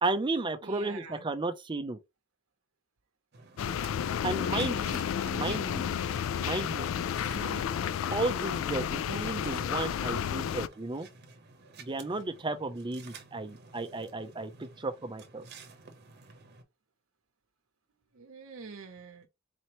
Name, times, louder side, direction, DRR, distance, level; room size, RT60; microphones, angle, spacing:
voice 1, 0.0-2.0 4.2-5.0 5.2-5.8 6.4-6.9 8.1-11.1 11.8-15.5, right 3 dB, 25° right, 0.5 m, -33 dB
voice 2, 0.6-1.2 5.4-5.6 7.2-7.7 18.1-19.3, right 4 dB, 80° right, 0.8 m, -45 dB
sound 1, 3.3-16.6, right 4 dB, 55° right, 0.9 m, -53 dB
sound 2, 3.6-10.7, left 8 dB, 70° left, 0.3 m, -31 dB
4.2 x 2.9 x 3.0 m
head